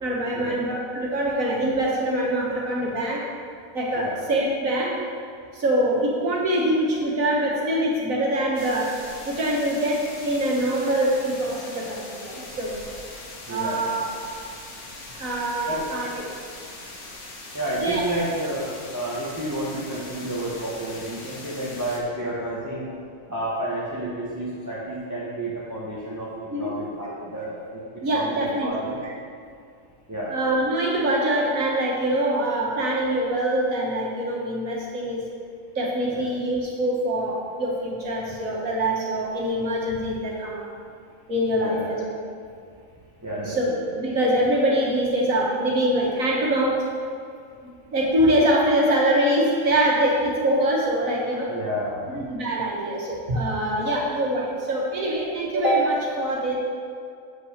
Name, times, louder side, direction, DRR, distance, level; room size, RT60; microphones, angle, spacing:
voice 1, 0.0-3.2 3.7-5.0 5.5-9.0 9.3-12.8 13.5-14.1 15.2-16.1 17.8-18.0 26.5-26.7 28.0-28.7 29.0-29.1 30.3-35.3 35.8-40.7 41.3-42.0 43.5-46.9 47.9-51.5 52.1-56.6, right 1 dB, 70° right, -3 dB, 2.1 m, -24 dB
sound 1, 8.5-22.0, left 2 dB, 85° left, 1.9 m, -41 dB
voice 2, 13.5-13.8 15.7-15.8 17.5-22.9 23.3-27.8 28.1-29.0 30.1-30.4 36.1-36.3 41.5-42.0 43.2-43.7 51.5-52.1, right 1 dB, 15° right, -8 dB, 1.2 m, -30 dB
8.0 x 5.9 x 6.6 m, 2.4 s
omnidirectional pair, 1.5 m